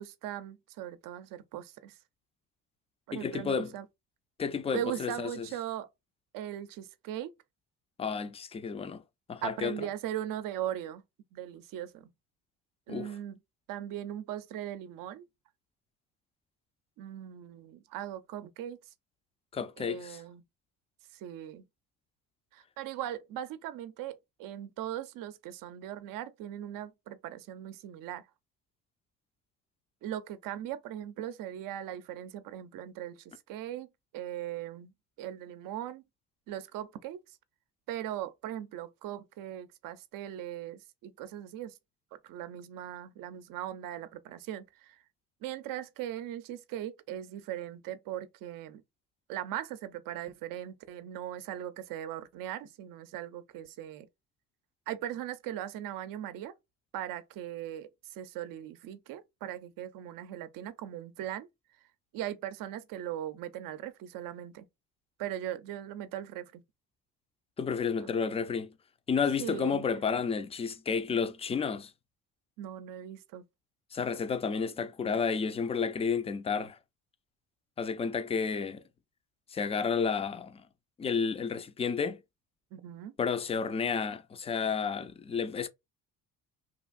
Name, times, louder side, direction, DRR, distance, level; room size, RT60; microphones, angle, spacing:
voice 1, 0.0-2.0 3.1-3.8 4.7-5.9 6.3-7.3 9.4-11.0 11.3-12.1 12.9-13.4 13.7-15.3 17.0-18.8 19.8-20.4 21.1-21.6 22.5-28.2 30.0-34.9 35.2-36.0 36.5-37.2 37.9-41.8 42.2-45.0 45.4-48.8 49.3-54.1 54.9-56.5 56.9-61.5 62.1-64.7 65.2-66.6 68.0-68.4 69.4-69.8 72.6-73.4 82.7-83.1, right 11 dB, 65° right, 0.5 m, -39 dB
voice 2, 3.1-3.7 4.4-5.5 8.0-9.0 9.3-9.8 12.9-13.1 19.5-20.2 67.6-68.7 69.1-71.9 73.9-76.8 77.8-78.8 79.5-80.6 81.0-82.2 83.2-85.7, left 6 dB, 20° left, 0.3 m, -31 dB
2.9 x 2.5 x 2.4 m
supercardioid pair, 90°, 36 cm